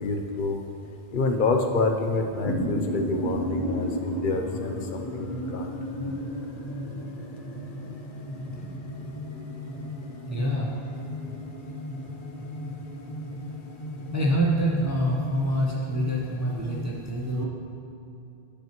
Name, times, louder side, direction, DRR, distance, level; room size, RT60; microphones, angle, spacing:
voice 1, 0.0-0.6 1.1-5.7, left 3 dB, 60° left, 4 dB, 0.7 m, -27 dB
sound 1, 2.1-16.8, equal, 40° left, 1.0 m, -34 dB
voice 2, 10.3-10.7 14.1-17.5, right 1 dB, 20° right, -3 dB, 0.5 m, -26 dB
10.0 x 6.0 x 2.9 m, 2.6 s
omnidirectional pair, 1.1 m